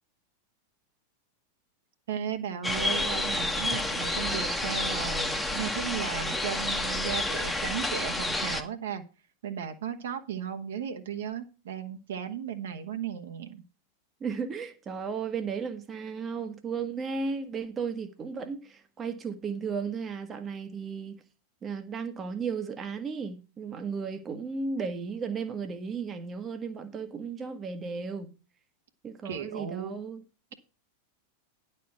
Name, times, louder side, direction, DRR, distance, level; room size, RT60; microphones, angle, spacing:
voice 1, 2.1-9.0 9.4-13.6 29.2-30.0, right 8 dB, 60° right, 1.2 m, -35 dB
sound 1, 2.6-8.6, left 1 dB, 5° left, 1.1 m, -30 dB
voice 2, 14.2-21.2 21.6-28.3 29.0-30.2, right 5 dB, 25° right, 1.1 m, -34 dB
10.5 x 4.4 x 7.5 m
figure-of-eight pair, 90°, 0 cm